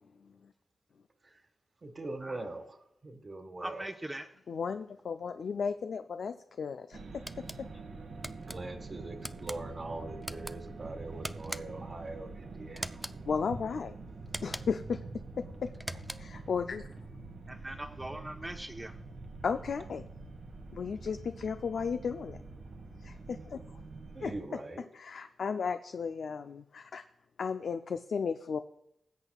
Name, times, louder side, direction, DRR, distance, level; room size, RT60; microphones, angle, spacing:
voice 1, 0.2-0.5 4.5-7.7 13.3-13.9 14.4-15.0 15.4-16.9 19.4-20.1 20.7-22.4 23.0-23.8 24.2-24.3 24.9-27.0 27.4-28.6, left 6 dB, 70° left, 8 dB, 0.5 m, -35 dB
voice 2, 1.8-3.9 8.5-13.0 24.1-24.8, right 2 dB, 45° right, 3 dB, 1.7 m, -42 dB
voice 3, 3.6-4.3 17.5-19.0, right 1 dB, 20° right, 3 dB, 1.0 m, -41 dB
sound 1, 6.9-24.4, right 3 dB, 80° right, 1.5 m, -45 dB
sound 2, 7.3-7.6 8.2-8.6 9.2-9.6 10.2-10.6 11.2-11.9 12.8-13.2 14.3-14.8 15.7-16.4, equal, 5° right, 0.5 m, -41 dB
19.5 x 8.1 x 2.4 m, 0.79 s
cardioid pair, 50°, 0 cm